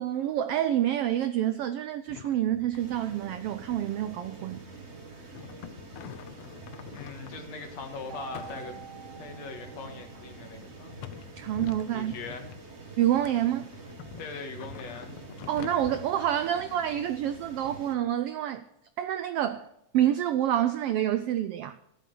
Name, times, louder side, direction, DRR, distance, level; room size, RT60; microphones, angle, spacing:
voice 1, 0.0-4.6 11.4-12.1 13.0-13.7 15.5-18.6 19.0-19.7 19.9-21.7, right 11 dB, 85° right, 1.3 m, -27 dB
sound 1, 2.1-3.0 3.3-3.5 3.7-4.8 5.3-7.8 8.3-9.2 9.8-9.9 10.7-12.7 13.2-16.0, left 12 dB, 85° left, 1.2 m, -46 dB
sound 2, 2.7-17.9, right 3 dB, 30° right, 1.6 m, -46 dB
voice 2, 6.9-8.8 9.1-11.0 11.9-12.5 14.2-15.1, left 4 dB, 65° left, 2.8 m, -41 dB
Keyboard (musical), 8.1-10.7, right 8 dB, 60° right, 2.2 m, -47 dB
14.5 x 11.5 x 5.4 m
omnidirectional pair, 3.3 m